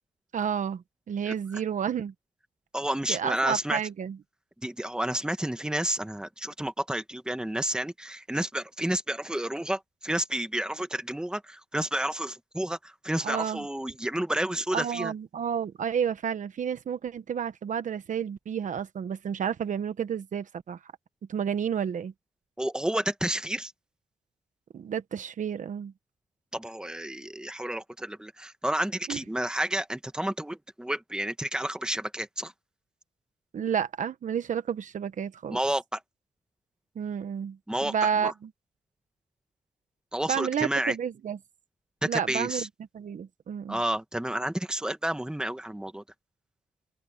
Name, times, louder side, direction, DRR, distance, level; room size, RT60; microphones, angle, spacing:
voice 1, 0.3-2.1 3.1-4.2 13.2-13.7 14.7-20.9 21.3-22.1 24.7-25.9 29.1-29.2 33.5-35.6 36.9-38.5 40.3-41.4 42.0-42.7 42.9-43.8, right 8 dB, 75° right, 1.1 m, -31 dB
voice 2, 2.7-3.8 4.6-15.1 22.6-23.7 26.5-32.5 35.5-36.0 37.7-38.3 40.1-40.9 42.0-42.7 43.7-46.0, right 1 dB, 5° right, 1.5 m, -30 dB
open air
wide cardioid pair, 105°, 13 cm